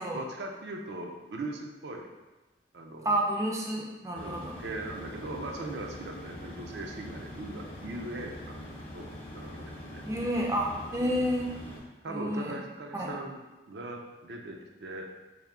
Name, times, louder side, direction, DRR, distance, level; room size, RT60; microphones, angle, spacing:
voice 1, 0.0-2.1 2.7-3.2 4.1-9.1 9.3-10.0 11.0-11.3 12.0-13.4 13.7-15.1, right 2 dB, 75° right, 2 dB, 0.5 m, -40 dB
voice 2, 3.0-4.6 10.1-11.5 12.1-12.6 12.9-13.1, equal, 15° right, -1 dB, 0.4 m, -30 dB
sound 1, 4.1-11.8, left 1 dB, 35° left, 0.6 m, -43 dB
3.4 x 2.6 x 3.6 m, 1.1 s
head